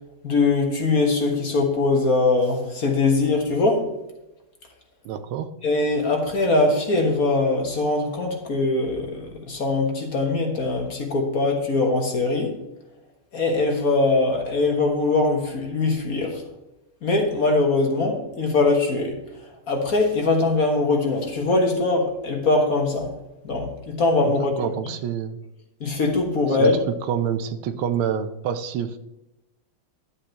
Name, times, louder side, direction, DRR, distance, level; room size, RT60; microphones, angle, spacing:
voice 1, 0.2-3.9 5.6-12.5 13.3-16.4 17.0-19.2 19.7-23.1 23.4-24.5 25.8-26.8, left 3 dB, 45° left, 1.6 m, -22 dB
voice 2, 5.0-5.5 24.2-25.4 26.5-26.7 27.1-29.0, right 8 dB, 75° right, 1.5 m, -27 dB
12.0 x 8.5 x 2.9 m
omnidirectional pair, 2.4 m